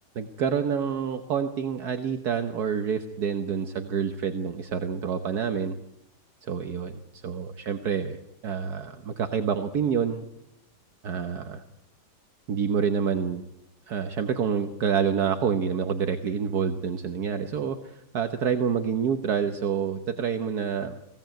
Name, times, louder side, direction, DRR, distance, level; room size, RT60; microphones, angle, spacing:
voice 1, 0.2-5.7 6.4-8.2 8.4-10.2 11.0-11.6 12.5-13.4 13.9-20.9, right 7 dB, 65° right, 7 dB, 1.6 m, -27 dB
22.5 x 17.0 x 9.2 m, 0.84 s
omnidirectional pair, 1.9 m